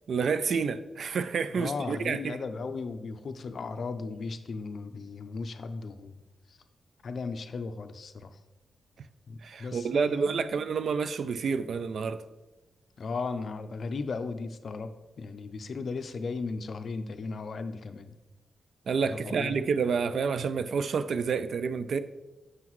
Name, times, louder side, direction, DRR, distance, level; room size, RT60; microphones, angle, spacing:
voice 1, 0.1-2.4 9.4-12.2 18.9-22.0, right 5 dB, 65° right, 0.3 m, -29 dB
voice 2, 1.5-6.2 6.5-6.6 7.0-8.4 9.3-10.7 13.0-18.1 19.2-19.5, left 4 dB, 55° left, 0.5 m, -36 dB
7.9 x 5.7 x 3.1 m
wide cardioid pair, 115°, 0 cm